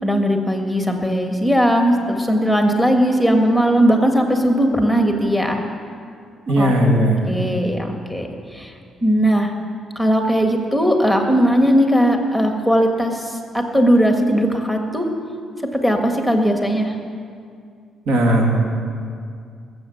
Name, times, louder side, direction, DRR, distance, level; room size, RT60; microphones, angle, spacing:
voice 1, 0.0-5.6 6.6-6.7 7.2-8.7 9.0-9.5 9.9-15.1 15.7-16.9, equal, ahead, 3 dB, 1.7 m, -18 dB
voice 2, 6.5-7.2 18.1-18.6, right 1 dB, 80° right, 0 dB, 2.6 m, -16 dB
20.0 x 8.0 x 7.1 m, 2.3 s
cardioid pair, 90°, 0 cm